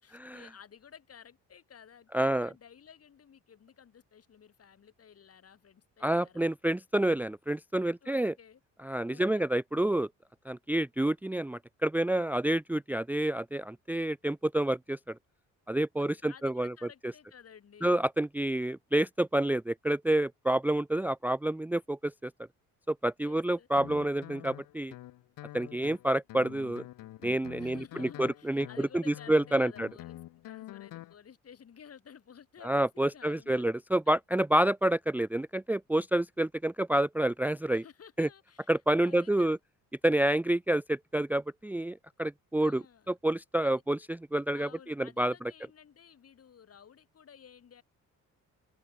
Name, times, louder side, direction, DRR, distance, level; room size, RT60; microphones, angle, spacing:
voice 1, 0.0-6.5 8.0-8.6 9.1-9.4 16.0-18.0 23.2-23.7 27.6-33.7 34.1-34.2 37.7-38.7 39.0-39.6 42.6-43.1 43.6-43.8 44.5-47.8, left 8 dB, 45° left, 6.0 m, -54 dB
voice 2, 2.1-2.5 6.0-8.3 8.8-10.1 10.5-15.1 15.7-16.7 17.8-22.3 22.9-24.9 25.5-26.8 27.2-29.9 32.6-37.8 38.2-38.3 38.7-39.6 40.0-45.3, right 1 dB, 5° right, 0.6 m, -28 dB
Guitar, 23.8-31.1, left 15 dB, 90° left, 2.2 m, -47 dB
cardioid pair, 120°, 32 cm